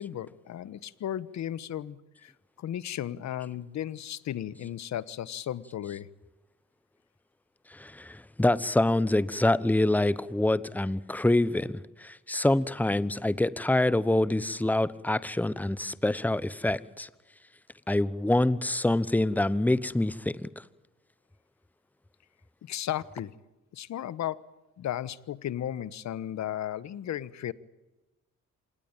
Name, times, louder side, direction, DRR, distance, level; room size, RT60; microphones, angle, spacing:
voice 1, 0.0-2.3 2.6-6.1 22.6-23.3 23.7-24.4 24.8-27.5, left 11 dB, 65° left, 18 dB, 1.2 m, -35 dB
voice 2, 7.7-17.1 17.9-20.5, left 1 dB, 5° left, 17 dB, 1.0 m, -26 dB
27.0 x 19.0 x 9.0 m, 1.1 s
cardioid pair, 90°, 30 cm